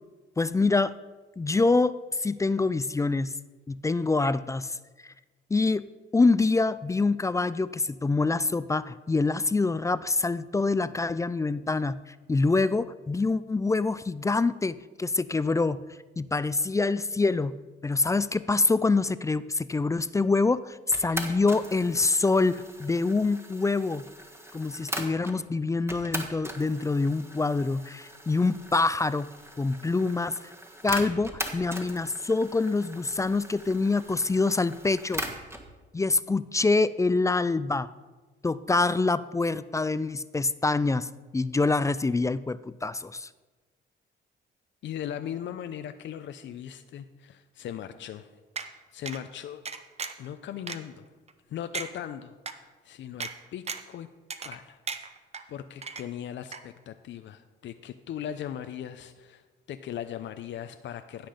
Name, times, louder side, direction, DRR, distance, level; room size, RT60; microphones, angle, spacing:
voice 1, 0.4-0.9 1.4-3.3 3.7-4.8 5.0-5.1 5.5-5.9 6.1-15.8 16.2-17.6 17.8-24.0 24.5-29.3 29.6-30.5 30.8-35.2 35.9-37.9 38.4-43.3, left 3 dB, 15° left, 16 dB, 0.3 m, -25 dB
sound 1, 20.9-25.4 25.9-35.7, right 1 dB, 15° right, 1.5 m, -40 dB
voice 2, 44.8-48.3 48.6-49.6 50.2-51.1 51.5-54.1 54.4-54.8 55.5-61.3, left 10 dB, 70° left, 9 dB, 0.6 m, -39 dB
sound 2, 48.6-48.7 49.1-49.2 49.7-50.3 50.7-50.8 51.3-51.4 51.7-51.9 52.5-52.6 53.2-53.3 53.7-53.9 54.3-54.6 54.9-55.4 55.8-56.3 56.5-56.6, right 5 dB, 30° right, 0.8 m, -35 dB
15.5 x 5.9 x 5.1 m, 1.3 s
cardioid pair, 90°, 20 cm